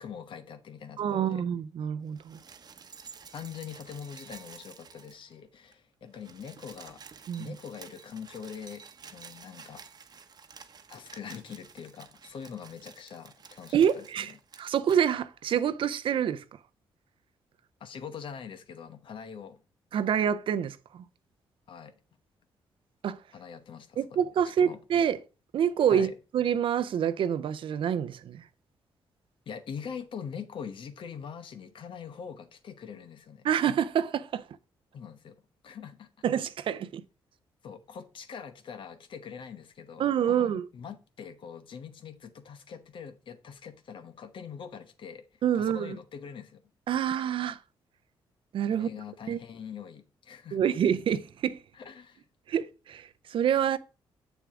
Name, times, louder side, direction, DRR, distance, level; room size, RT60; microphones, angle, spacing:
voice 1, 0.0-1.5 3.3-7.0 7.4-8.9 9.1-9.8 10.9-14.4 17.8-19.6 21.7-21.9 23.3-24.0 24.4-24.8 25.9-26.1 29.5-33.5 34.9-35.4 35.6-36.1 37.6-46.6 48.7-50.6 51.7-52.2, left 7 dB, 65° left, 1.0 m, -43 dB
voice 2, 1.0-2.4 7.3-7.5 13.7-14.3 14.6-16.4 19.9-21.0 23.0-23.2 24.0-25.2 25.5-28.4 33.4-34.4 36.2-37.0 40.0-40.7 45.4-46.0 46.9-47.6 48.5-48.9 49.3-49.4 50.5-51.6 52.5-53.8, right 9 dB, 70° right, 0.6 m, -27 dB
sound 1, 2.1-5.4 5.7-5.8 6.0-15.0 16.0-16.1, right 6 dB, 45° right, 0.9 m, -51 dB
7.3 x 7.0 x 3.7 m
cardioid pair, 90°, 9 cm